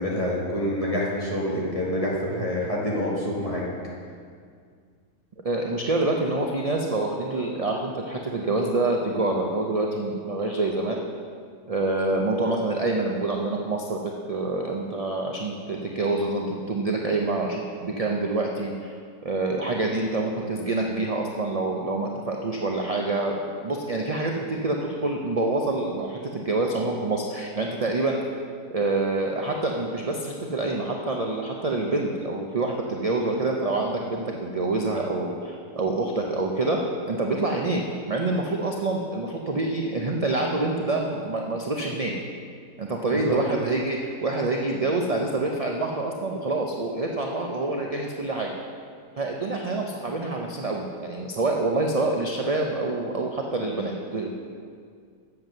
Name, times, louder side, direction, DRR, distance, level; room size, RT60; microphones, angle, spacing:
voice 1, 0.0-3.6 43.1-43.4, left 1 dB, 25° left, -5 dB, 2.0 m, -27 dB
voice 2, 5.4-11.0 11.7-18.9 19.2-23.4 23.6-28.2 28.7-36.8 37.0-42.1 42.8-48.5 49.1-54.3, right 2 dB, 40° right, 0 dB, 0.5 m, -26 dB
7.9 x 7.5 x 6.5 m, 2.1 s
omnidirectional pair, 1.5 m